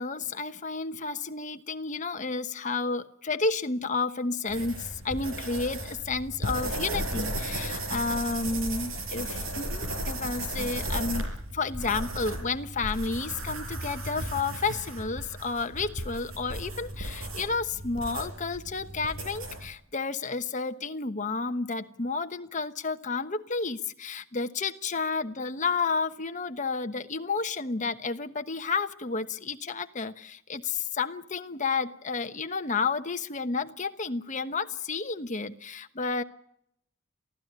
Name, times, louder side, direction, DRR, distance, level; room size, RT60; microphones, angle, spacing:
voice 1, 0.0-36.2, left 4 dB, 35° left, 7 dB, 1.1 m, -31 dB
sound 1, 4.5-19.7, right 1 dB, 75° right, 6.6 m, -35 dB
23.5 x 15.0 x 9.6 m, 0.74 s
head